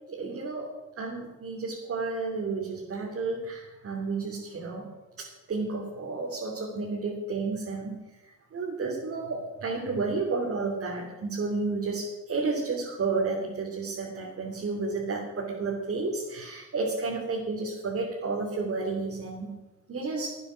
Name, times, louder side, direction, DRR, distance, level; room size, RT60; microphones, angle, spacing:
voice 1, 0.1-0.7 1.0-4.9 5.2-8.0 8.2-19.5 19.9-20.4, right 3 dB, 50° right, -3 dB, 3.2 m, -31 dB
12.5 x 9.6 x 6.4 m, 1.1 s
cardioid pair, 90°, 30 cm